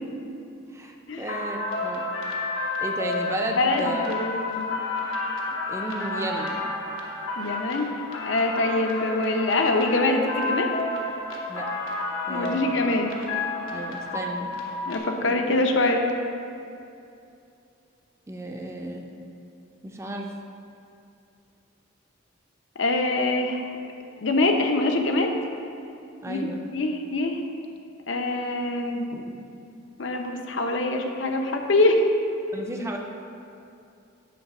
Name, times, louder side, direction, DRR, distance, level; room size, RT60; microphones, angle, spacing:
voice 1, 0.7-2.0 2.8-4.0 5.7-6.7 11.5-11.7 12.3-12.8 13.7-14.5 15.2-15.4 18.3-19.1 19.8-20.3 26.2-26.6 32.5-33.0, right 1 dB, 15° right, 2 dB, 0.4 m, -33 dB
sound 1, 1.3-15.0, left 2 dB, 85° left, 1.1 m, -31 dB
voice 2, 3.5-4.7 7.4-7.9 8.3-10.7 12.3-13.2 14.9-16.1 22.8-23.6 24.2-25.3 26.3-27.4 28.1-29.2 30.0-32.1, left 2 dB, 70° left, 4 dB, 0.7 m, -24 dB
9.4 x 3.2 x 6.0 m, 2.6 s
head